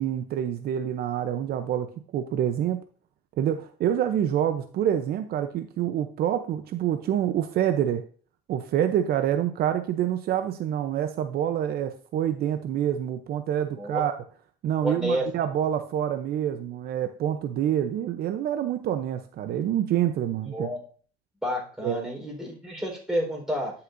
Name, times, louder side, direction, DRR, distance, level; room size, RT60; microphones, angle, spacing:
voice 1, 0.0-1.9 2.1-2.8 3.4-8.0 8.5-14.1 14.6-20.7 21.8-22.0, right 10 dB, 65° right, 8 dB, 0.7 m, -27 dB
voice 2, 14.8-15.3 20.5-20.8 21.4-23.7, equal, 5° right, -2 dB, 4.3 m, -30 dB
11.0 x 5.9 x 2.6 m, 0.43 s
cardioid pair, 110°, 17 cm